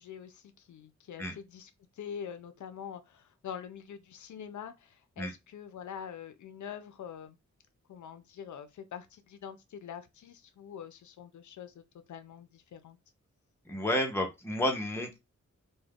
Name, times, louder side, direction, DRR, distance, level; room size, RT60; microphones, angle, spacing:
voice 1, 0.0-7.4 7.9-11.8 12.1-13.0, left 8 dB, 85° left, 0.4 m, -45 dB
voice 2, 13.7-15.2, left 1 dB, 10° left, 0.6 m, -31 dB
2.3 x 2.2 x 3.3 m
wide cardioid pair, 145°, 29 cm